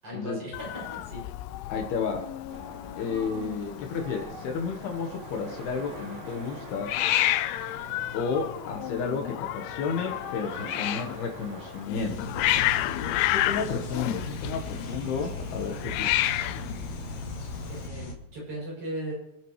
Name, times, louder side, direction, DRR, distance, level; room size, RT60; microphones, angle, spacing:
voice 1, 0.0-1.2 17.7-19.1, right 1 dB, 35° right, -5 dB, 7.2 m, -37 dB
Hiss, 0.5-17.9, left 15 dB, 90° left, 2.2 m, -31 dB
voice 2, 1.7-2.3 3.0-6.9 8.1-12.4 13.3-16.6, left 5 dB, 70° left, 3 dB, 2.9 m, -32 dB
sound 1, 2.5-11.9, right 2 dB, 65° right, 6.0 m, -44 dB
sound 2, 11.9-18.1, left 2 dB, 50° left, 1.8 m, -37 dB
27.0 x 9.2 x 3.1 m, 0.84 s
omnidirectional pair, 5.1 m